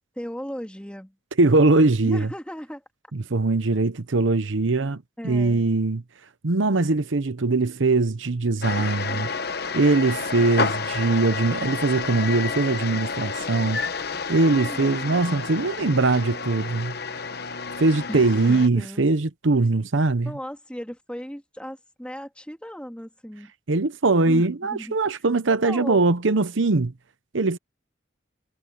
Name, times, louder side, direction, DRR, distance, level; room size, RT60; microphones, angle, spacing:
voice 1, 0.2-1.1 2.0-2.8 5.2-5.6 14.5-15.2 18.1-19.0 20.2-23.5 24.2-25.0 25.6-26.0, equal, 5° left, 2.4 m, -36 dB
voice 2, 1.4-2.3 3.1-6.0 6.4-9.3 9.7-13.8 14.3-17.0 17.8-20.3 23.7-26.9 27.3-27.6, right 3 dB, 80° right, 0.9 m, -21 dB
sound 1, 8.6-18.7, left 4 dB, 55° left, 1.1 m, -30 dB
head